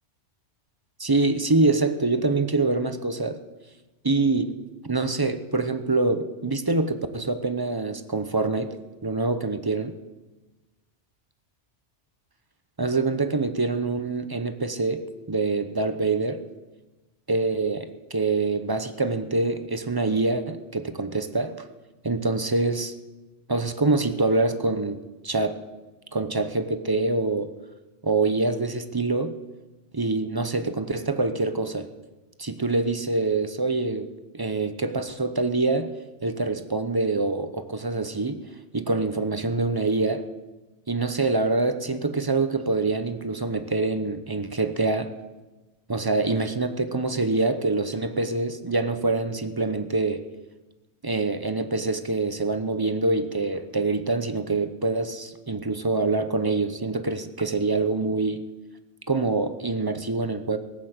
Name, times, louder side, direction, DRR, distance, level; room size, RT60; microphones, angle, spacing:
voice 1, 1.0-3.4 4.0-4.6 4.8-8.8 9.0-9.9 12.8-16.4 17.3-21.6 22.0-22.9 23.5-25.0 25.2-25.6 26.1-27.5 28.0-29.3 29.9-31.9 32.4-34.1 34.3-35.9 36.2-38.4 38.7-40.3 40.9-45.1 45.9-50.2 51.0-58.4 59.1-60.6, right 3 dB, 20° right, 9 dB, 0.7 m, -25 dB
18.5 x 8.2 x 8.0 m, 1.2 s
omnidirectional pair, 1.2 m